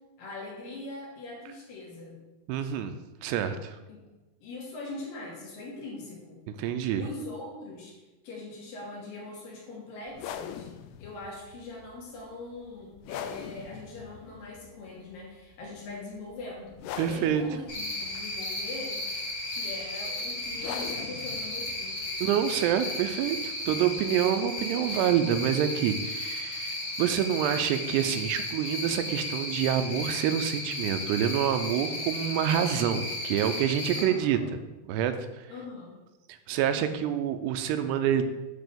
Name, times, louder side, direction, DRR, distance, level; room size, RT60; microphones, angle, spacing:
voice 1, 0.2-2.2 3.9-4.0 4.4-6.4 7.0-8.0 8.2-10.7 11.0-16.8 17.0-19.0 19.4-22.0 33.9-34.5 35.5-35.9, left 2 dB, 60° left, -3 dB, 3.0 m, -41 dB
voice 2, 2.5-3.0 3.2-3.8 6.5-7.1 17.0-17.4 22.2-34.4 34.9-35.5 36.3-38.2, right 9 dB, 85° right, 8 dB, 2.6 m, -27 dB
sound 1, 10.1-25.4, left 9 dB, 80° left, 2.4 m, -44 dB
Cricket, 17.7-34.0, left 1 dB, 45° left, 2.4 m, -34 dB
8.2 x 3.8 x 6.7 m, 1.1 s
omnidirectional pair, 4.9 m